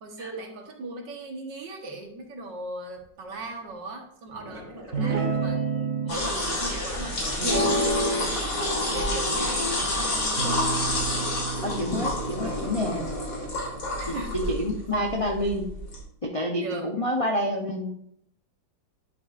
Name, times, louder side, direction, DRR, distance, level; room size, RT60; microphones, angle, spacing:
voice 1, 0.0-8.3 8.9-10.6 14.0-14.5 16.6-16.9, right 2 dB, 70° right, 2 dB, 2.0 m, -39 dB
sound 1, 2.5-2.6 3.0-3.7 4.3-6.2 6.6-8.1 8.6-8.7 9.3-10.8 12.4-12.9 13.3-13.5, left 1 dB, 15° right, 2.6 m, -45 dB
Guitar, 4.9-6.1 7.4-8.3 8.6-9.8 10.4-13.8, right 2 dB, 50° right, 1.7 m, -30 dB
sound 2, 6.1-16.0, left 1 dB, 70° left, 3.5 m, -29 dB
voice 2, 11.6-13.1 14.1-15.7 16.2-17.9, left 1 dB, 40° left, -1 dB, 0.4 m, -28 dB
10.5 x 7.9 x 2.5 m, 0.74 s
omnidirectional pair, 2.1 m